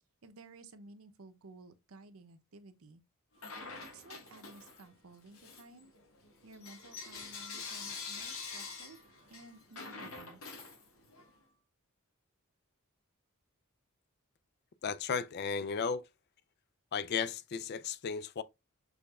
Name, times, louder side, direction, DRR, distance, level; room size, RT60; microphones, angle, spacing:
voice 1, 0.2-3.0 3.9-5.9 6.4-10.4, right 2 dB, 75° right, 0.7 m, -55 dB
Bell / Coin (dropping), 3.4-4.9 5.3-11.3, left 4 dB, 70° left, 1.5 m, -46 dB
voice 2, 14.8-16.0 16.9-18.4, left 6 dB, 50° left, 0.4 m, -34 dB
6.4 x 3.5 x 2.3 m
head